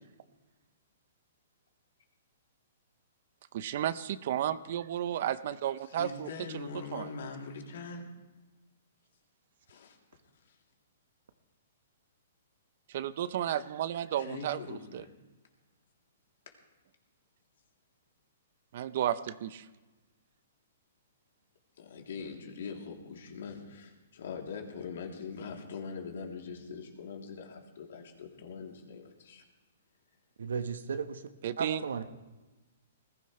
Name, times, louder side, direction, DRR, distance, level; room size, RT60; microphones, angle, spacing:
voice 1, 3.5-6.3 6.5-7.1 12.9-15.0 18.7-19.6 31.4-31.8, right 11 dB, 55° right, 15 dB, 0.7 m, -33 dB
voice 2, 5.9-8.1 9.7-10.0 10.5-10.6 14.2-15.1 16.5-16.6 21.8-29.4, left 5 dB, 70° left, 1 dB, 3.1 m, -42 dB
voice 3, 30.4-31.2 31.6-32.1, right 6 dB, 80° right, 10 dB, 1.2 m, -34 dB
20.5 x 15.5 x 3.3 m, 1.1 s
hypercardioid pair, 140°, 0 cm